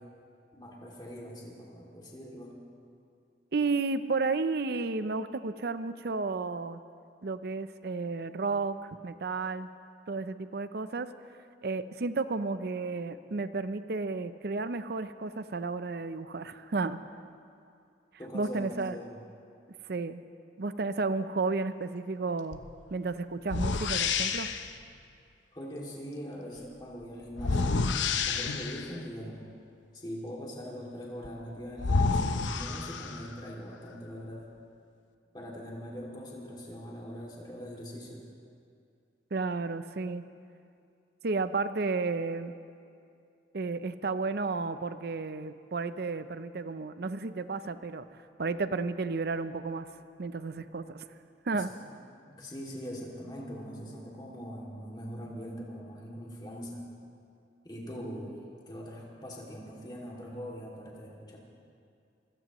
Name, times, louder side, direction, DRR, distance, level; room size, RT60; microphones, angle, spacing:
voice 1, 0.5-2.6 18.2-19.2 25.5-27.8 28.1-29.4 29.9-34.5 35.3-38.2 51.5-51.6 52.3-56.9 57.6-58.4 58.7-61.4, equal, 25° left, -3 dB, 2.5 m, -42 dB
voice 2, 3.5-6.8 7.2-9.7 10.1-11.1 11.6-17.0 18.3-19.0 19.9-20.2 20.6-22.6 22.9-24.5 39.3-40.2 41.2-42.6 43.5-48.1 48.4-49.9 50.2-51.0 51.5-51.7, right 3 dB, 55° right, 12 dB, 0.5 m, -32 dB
sound 1, 22.5-22.7 23.5-24.7 27.4-29.0 31.2-31.3 31.8-33.4, left 4 dB, 80° left, 0.7 m, -29 dB
26.0 x 16.5 x 3.1 m, 2.4 s
head